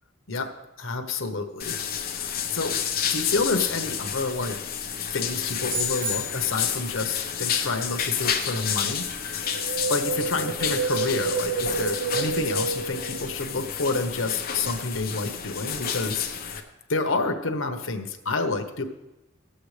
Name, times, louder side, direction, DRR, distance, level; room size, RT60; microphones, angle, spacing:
voice 1, 0.8-1.8 2.2-2.7 3.1-4.6 5.1-9.1 9.5-9.6 9.9-16.3 16.9-18.8, left 3 dB, 90° left, 5 dB, 1.1 m, -29 dB
sound 1, 1.6-16.6, left 7 dB, 50° left, 1.0 m, -30 dB
sound 2, 5.7-6.8, equal, 90° right, 1.6 m, -32 dB
Wind, 9.4-13.8 14.0-14.1, right 4 dB, 60° right, 0.6 m, -29 dB
18.0 x 7.9 x 3.3 m, 0.98 s
head